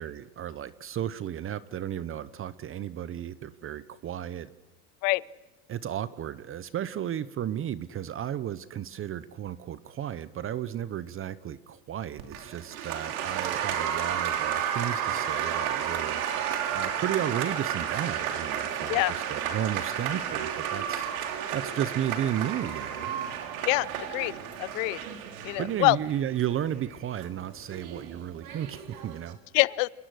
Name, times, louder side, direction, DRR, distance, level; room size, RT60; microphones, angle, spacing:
voice 1, 0.0-4.5 5.7-16.2 16.7-21.1 21.5-23.1 25.6-29.4, right 10 dB, 30° right, 16 dB, 0.8 m, -33 dB
Applause, 12.2-29.3, right 9 dB, 85° right, 3.0 m, -32 dB
voice 2, 23.6-24.3 24.6-25.0 25.4-26.0 29.5-29.9, left 25 dB, 70° left, 21 dB, 0.8 m, -25 dB
27.0 x 21.5 x 6.4 m, 1.1 s
supercardioid pair, 120°, 41 cm